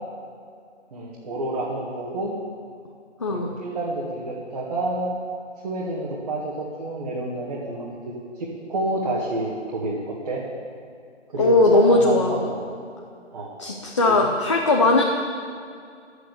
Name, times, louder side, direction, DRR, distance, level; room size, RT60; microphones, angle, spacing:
voice 1, 0.9-2.3 3.3-5.1 5.6-10.0 10.2-10.4 11.3-12.5 13.3-13.5 14.0-14.2, right 2 dB, 35° right, -5 dB, 1.9 m, -29 dB
voice 2, 11.4-12.4 13.6-15.0, left 2 dB, 25° left, 1 dB, 0.7 m, -18 dB
11.5 x 8.3 x 8.7 m, 2.3 s
figure-of-eight pair, 155°, 36 cm